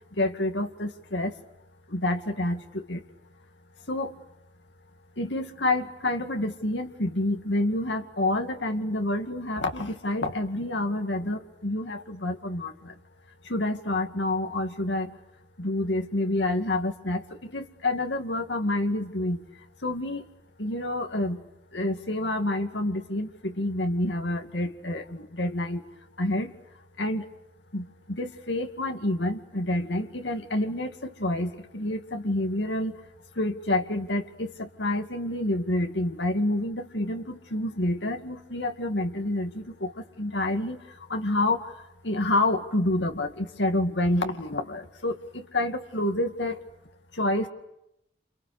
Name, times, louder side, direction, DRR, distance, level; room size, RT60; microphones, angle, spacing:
voice 1, 0.2-1.3 1.9-3.0 3.9-4.1 5.2-12.9 13.5-15.1 15.6-19.4 19.8-20.2 20.6-21.4 21.7-25.8 26.2-26.5 27.0-27.3 27.7-32.9 33.4-39.9 40.2-40.8 41.1-41.7 42.0-46.6 47.2-47.5, left 1 dB, 85° left, 5 dB, 2.3 m, -28 dB
30.0 x 29.0 x 6.7 m, 0.83 s
head